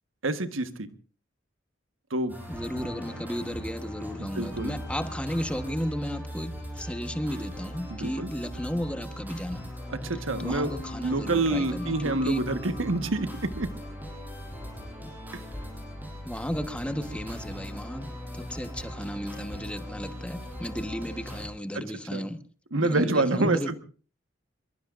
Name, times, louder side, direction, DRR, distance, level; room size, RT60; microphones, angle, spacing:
voice 1, 0.2-0.9 2.1-2.3 4.2-4.8 7.9-8.3 9.9-10.7 11.0-13.7 21.7-21.9 22.1-22.3 22.7-23.8, right 2 dB, 85° right, 1.4 m, -27 dB
sound 1, 2.3-21.5, equal, 10° right, 6.1 m, -39 dB
voice 2, 2.5-9.7 10.4-12.4 16.2-18.1 18.3-22.4 22.8-23.8, equal, 5° left, 1.2 m, -34 dB
sound 2, 7.1-19.4, equal, 70° left, 5.7 m, -47 dB
25.0 x 22.5 x 2.6 m
head